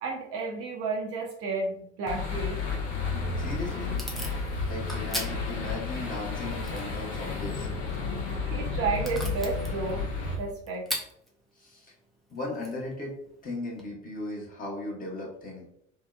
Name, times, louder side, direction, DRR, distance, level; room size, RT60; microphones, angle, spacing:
voice 1, 0.0-2.6 8.4-10.1 10.4-10.9, right 4 dB, 40° right, -1 dB, 0.6 m, -32 dB
sound 1, 2.1-10.4, left 4 dB, 45° left, 0.6 m, -32 dB
Packing tape duct tape / Tearing, 3.1-13.9, equal, ahead, 0.5 m, -42 dB
voice 2, 3.4-4.0 4.7-7.7 11.6-11.9 12.3-13.2 13.4-15.6, left 2 dB, 25° left, -3 dB, 0.9 m, -37 dB
2.7 x 2.1 x 2.2 m, 0.72 s
figure-of-eight pair, 65°, 35 cm